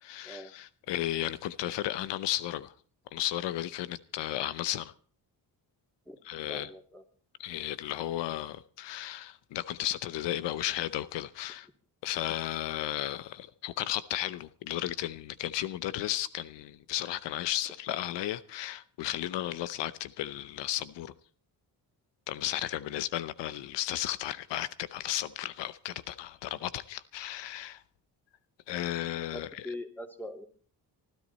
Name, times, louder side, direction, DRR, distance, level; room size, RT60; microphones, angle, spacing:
voice 1, 0.0-2.7 3.1-4.9 6.2-6.7 7.4-11.7 12.0-21.1 22.3-27.8 28.7-29.8, left 13 dB, 85° left, 0.8 m, -34 dB
voice 2, 6.5-7.0 29.3-30.5, left 1 dB, 5° left, 2.7 m, -42 dB
24.0 x 12.5 x 4.2 m
cardioid pair, 85°, 41 cm